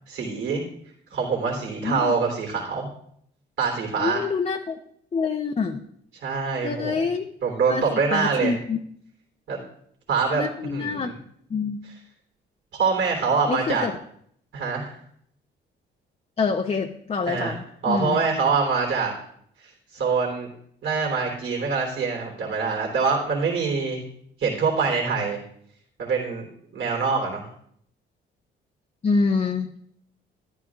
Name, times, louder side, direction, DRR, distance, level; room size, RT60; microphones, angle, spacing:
voice 1, 0.1-0.6 1.1-2.9 3.6-4.2 6.2-6.9 7.4-8.6 9.5-9.6 10.1-11.0 12.7-13.9 14.5-14.9 17.3-17.6 17.8-19.1 19.6-20.5 20.8-24.0 24.4-25.4 26.0-26.4 26.7-27.4, right 5 dB, 70° right, 0 dB, 3.4 m, -24 dB
voice 2, 1.8-2.1 4.0-4.8 5.1-5.8 6.6-7.3 7.7-8.8 10.3-11.1 11.5-11.8 13.5-13.9 16.4-18.2 29.0-29.7, left 4 dB, 30° left, 4 dB, 0.7 m, -26 dB
13.0 x 12.0 x 2.4 m, 0.66 s
cardioid pair, 90°, 20 cm